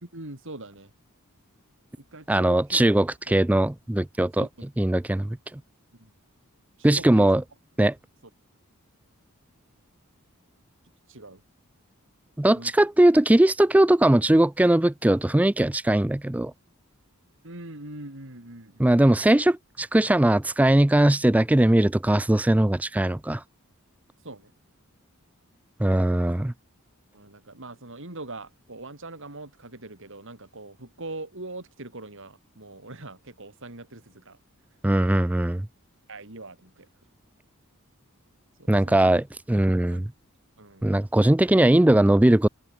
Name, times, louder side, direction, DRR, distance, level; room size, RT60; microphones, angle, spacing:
voice 1, 0.0-0.9 2.0-2.8 3.3-3.4 4.4-4.7 6.0-6.1 6.8-7.3 11.1-11.4 12.5-12.7 17.4-19.3 24.2-24.5 27.1-34.4 36.1-36.9 38.6-39.2 39.9-40.0 40.6-40.9, right 2 dB, 60° right, 4.1 m, -42 dB
voice 2, 2.3-4.5 4.8-5.4 6.8-7.4 7.8-7.9 12.4-16.5 18.8-23.4 25.8-26.5 34.8-35.7 38.7-40.1 40.8-42.5, right 1 dB, 5° right, 0.3 m, -20 dB
open air
head